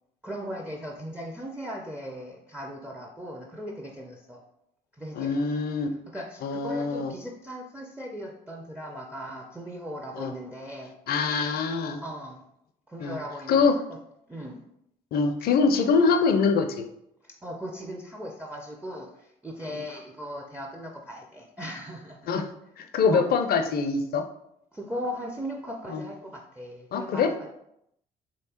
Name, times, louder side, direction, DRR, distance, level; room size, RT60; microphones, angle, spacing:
voice 1, 0.2-4.4 5.0-5.3 6.1-10.9 12.0-12.4 12.9-13.6 13.9-14.0 14.3-14.6 17.2-22.3 23.1-23.2 24.7-27.5, equal, 5° right, 1 dB, 0.4 m, -38 dB
voice 2, 5.1-5.9 6.4-7.1 10.1-10.3 11.1-12.0 13.0-13.2 13.5-13.7 15.1-16.8 22.3-22.5 22.8-24.2 25.9-26.0 26.9-27.3, left 5 dB, 50° left, 7 dB, 0.4 m, -24 dB
3.2 x 2.8 x 2.8 m, 0.77 s
figure-of-eight pair, 45°, 21 cm